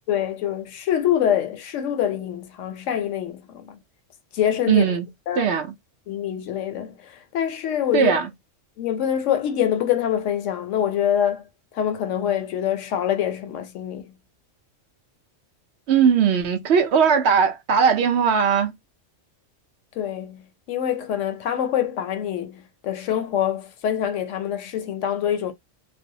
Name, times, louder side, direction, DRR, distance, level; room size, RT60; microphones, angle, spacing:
voice 1, 0.1-3.8 4.3-5.0 5.3-5.6 6.1-8.1 8.8-11.4 11.7-14.1 20.0-25.5, left 10 dB, 80° left, 0.9 m, -25 dB
voice 2, 4.7-5.1 5.4-5.7 7.9-8.3 15.9-18.7, right 7 dB, 65° right, 0.8 m, -19 dB
2.5 x 2.0 x 2.6 m
omnidirectional pair, 1.3 m